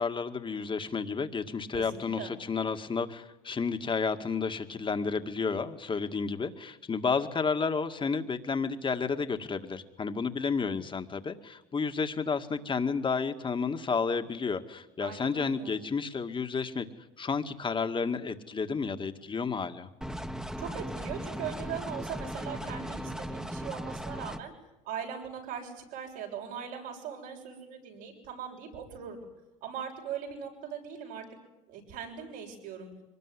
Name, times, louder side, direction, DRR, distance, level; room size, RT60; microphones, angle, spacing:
voice 1, 0.0-16.9 17.2-19.9, left 5 dB, 30° left, 7 dB, 2.1 m, -31 dB
voice 2, 1.7-2.3 15.0-15.8 20.6-24.5 24.8-29.2 29.6-31.2 31.7-32.9, right 8 dB, 80° right, 0 dB, 7.3 m, -40 dB
sound 1, 20.0-24.4, equal, 5° right, 1.7 m, -37 dB
24.0 x 20.0 x 10.0 m, 0.98 s
supercardioid pair, 80°, 16 cm